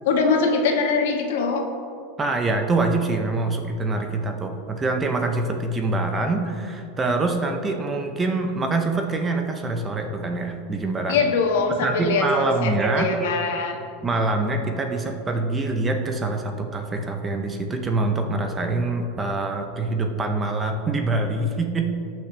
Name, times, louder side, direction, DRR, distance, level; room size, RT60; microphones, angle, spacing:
voice 1, 0.0-1.6 11.1-12.7 13.0-13.7, left 4 dB, 75° left, 3 dB, 1.5 m, -22 dB
voice 2, 2.2-11.2 11.7-13.3 14.0-21.9, right 2 dB, 15° right, 4 dB, 0.7 m, -25 dB
18.0 x 6.0 x 3.3 m, 2.4 s
supercardioid pair, 155°, 0 cm